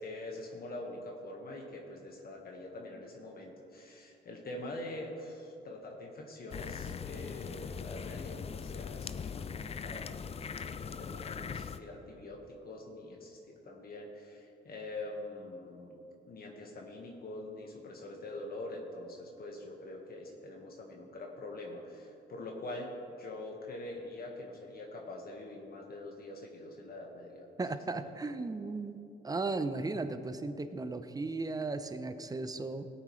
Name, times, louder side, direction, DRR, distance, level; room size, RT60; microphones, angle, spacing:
voice 1, 0.0-16.0 16.3-22.9 23.2-27.8, left 2 dB, 50° left, 0 dB, 1.5 m, -44 dB
sound 1, 6.5-11.8, left 6 dB, 30° left, 0.4 m, -40 dB
voice 2, 27.6-29.0 29.2-32.9, right 3 dB, 20° right, 10 dB, 0.6 m, -36 dB
17.0 x 9.0 x 3.2 m, 2.8 s
cardioid pair, 90°, 20 cm